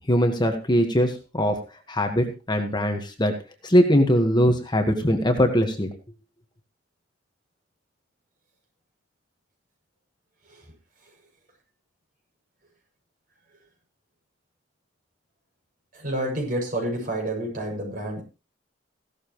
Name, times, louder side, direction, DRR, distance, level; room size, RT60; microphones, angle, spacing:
voice 1, 0.1-1.5 1.9-3.3 3.6-5.9, equal, 25° left, 5 dB, 1.5 m, -21 dB
voice 2, 15.9-18.2, right 1 dB, 50° right, 1 dB, 6.8 m, -29 dB
16.0 x 12.5 x 3.1 m, 0.32 s
head